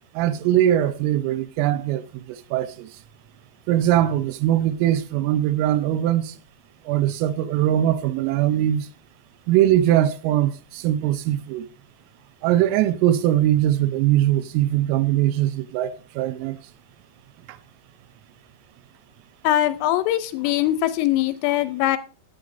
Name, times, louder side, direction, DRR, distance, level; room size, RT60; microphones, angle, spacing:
voice 1, 0.2-2.9 3.7-6.3 6.9-8.9 9.5-11.7 12.4-16.6, right 12 dB, 85° right, 3.4 m, -21 dB
voice 2, 19.4-22.0, left 13 dB, 85° left, 3.0 m, -22 dB
16.5 x 9.3 x 2.6 m
omnidirectional pair, 5.9 m